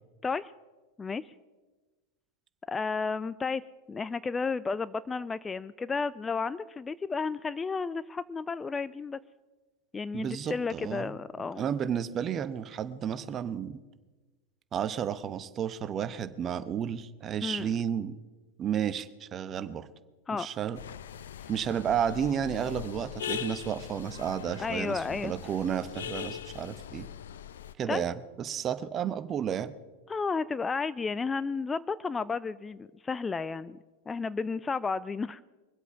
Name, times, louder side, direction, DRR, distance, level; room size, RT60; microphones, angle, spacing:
voice 1, 2.7-3.6 3.9-9.2 9.9-11.7 17.4-17.7 20.3-20.5 24.6-25.3 27.9-28.0 30.1-33.8 34.1-35.4, left 4 dB, 15° left, 17 dB, 0.4 m, -32 dB
voice 2, 10.1-11.1 11.6-13.8 14.7-18.2 18.6-19.9 20.3-20.8 21.5-27.1 27.8-29.7, right 8 dB, 30° right, 13 dB, 0.9 m, -32 dB
sound 1, 20.7-27.7, left 9 dB, 70° left, 0.6 m, -40 dB
23.5 x 8.2 x 5.7 m, 1.2 s
figure-of-eight pair, 90°, 0 cm